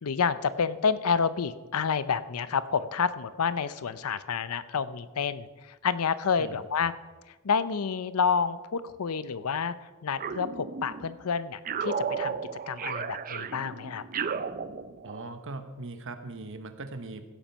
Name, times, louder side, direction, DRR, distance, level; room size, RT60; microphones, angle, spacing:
voice 1, 0.0-6.9 7.4-9.7 10.0-12.3 12.7-14.0, left 6 dB, 80° left, 15 dB, 0.6 m, -29 dB
sound 1, 10.2-11.2 11.7-15.3, right 6 dB, 40° right, 0.5 m, -34 dB
voice 2, 15.0-17.3, right 3 dB, 60° right, 9 dB, 1.1 m, -40 dB
15.5 x 7.4 x 5.5 m, 1.2 s
head